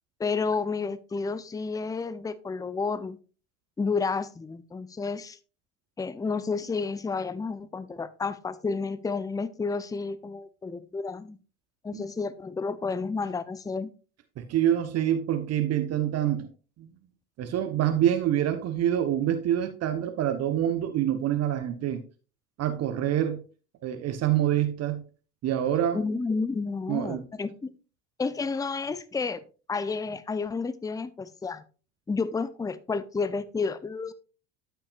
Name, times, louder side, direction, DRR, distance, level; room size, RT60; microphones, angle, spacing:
voice 1, 0.2-3.2 3.8-5.4 6.0-11.4 11.8-13.9 25.9-27.7 28.2-29.4 29.7-31.6 32.1-34.1, left 4 dB, 10° left, 0.7 m, -31 dB
voice 2, 14.4-16.5 16.8-16.9 17.4-22.0 22.6-23.4 23.8-25.0 25.4-26.0 26.9-27.2, right 11 dB, 40° right, 1.1 m, -26 dB
13.0 x 5.8 x 2.5 m
hypercardioid pair, 75°, 37 cm